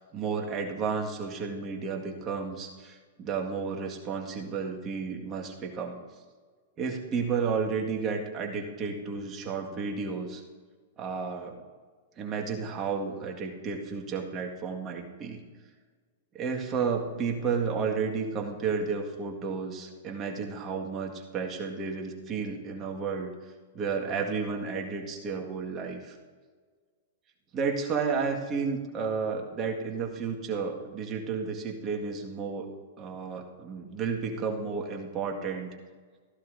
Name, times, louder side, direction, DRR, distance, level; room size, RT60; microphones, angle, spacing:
voice 1, 0.0-6.0 6.8-10.4 11.0-11.6 12.2-15.4 16.3-23.3 23.7-26.2 27.5-32.7 33.0-35.7, right 5 dB, 30° right, 1 dB, 1.8 m, -32 dB
16.0 x 14.5 x 2.7 m, 1.5 s
figure-of-eight pair, 100°, 0 cm